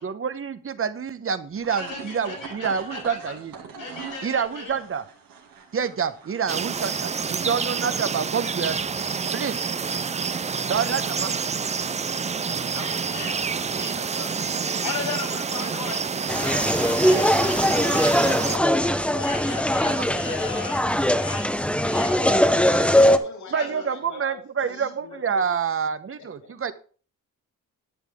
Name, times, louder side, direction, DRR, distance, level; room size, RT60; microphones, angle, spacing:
voice 1, 0.0-3.5 4.2-5.0 5.7-8.8 9.3-9.6 10.7-11.3 23.5-26.7, right 6 dB, 40° right, 13 dB, 1.0 m, -27 dB
sound 1, 1.5-7.3, right 6 dB, 80° right, 2.4 m, -43 dB
voice 2, 1.7-3.3 3.7-4.8 12.7-14.3 14.6-16.0 16.4-18.4 19.2-20.8 21.2-21.5 21.8-22.2 23.5-23.9, left 4 dB, 75° left, 2 dB, 6.0 m, -36 dB
sound 2, 6.5-18.6, right 5 dB, 20° right, 0.4 m, -28 dB
sound 3, 16.3-23.2, equal, 5° left, 0.8 m, -21 dB
voice 3, 17.3-20.7 21.9-25.5 26.2-26.7, left 5 dB, 55° left, 2 dB, 3.4 m, -41 dB
11.0 x 8.3 x 3.6 m, 0.40 s
cardioid pair, 85°, 34 cm